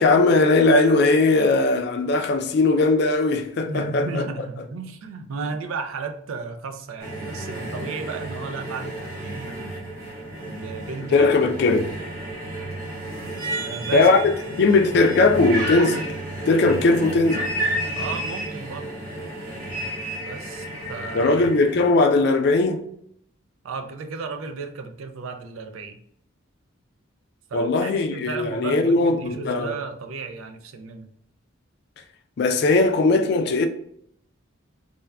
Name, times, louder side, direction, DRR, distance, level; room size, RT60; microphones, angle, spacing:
voice 1, 0.0-4.3 11.1-11.9 13.9-16.1 16.5-17.5 21.1-22.9 27.5-29.7 32.4-33.7, left 3 dB, 55° left, 0.3 m, -19 dB
voice 2, 3.7-9.8 10.4-11.3 11.7-11.8 13.6-14.1 17.9-18.9 20.2-21.3 23.6-26.0 27.5-31.1, right 4 dB, 90° right, 0.4 m, -34 dB
sound 1, 7.0-21.9, right 1 dB, 45° right, 1.2 m, -31 dB
3.4 x 2.1 x 2.2 m
head